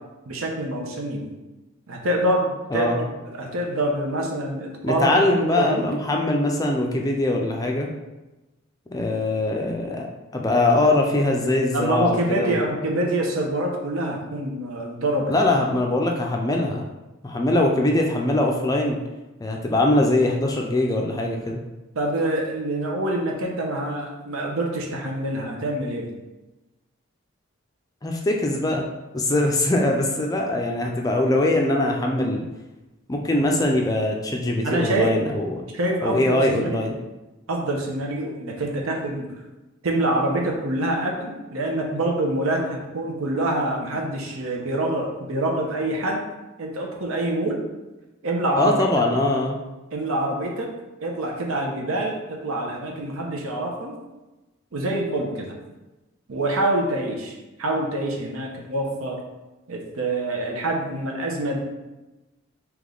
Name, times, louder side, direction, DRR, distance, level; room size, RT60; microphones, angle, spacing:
voice 1, 0.3-1.2 1.9-5.9 11.7-15.3 22.0-26.1 34.6-35.1 35.7-36.8 37.5-39.3 39.8-46.2 46.6-47.6 48.2-48.7 49.9-50.7 51.0-54.0 54.7-55.6 56.3-59.2 59.7-61.6, right 1 dB, 85° right, 0 dB, 0.8 m, -26 dB
voice 2, 4.8-7.9 8.9-10.1 10.3-12.7 15.3-16.9 17.2-19.0 19.4-21.6 28.0-28.8 29.1-32.5 33.1-35.6 36.0-37.0 48.6-49.6, left 2 dB, 15° left, 1 dB, 0.4 m, -22 dB
3.5 x 3.0 x 3.8 m, 1.1 s
head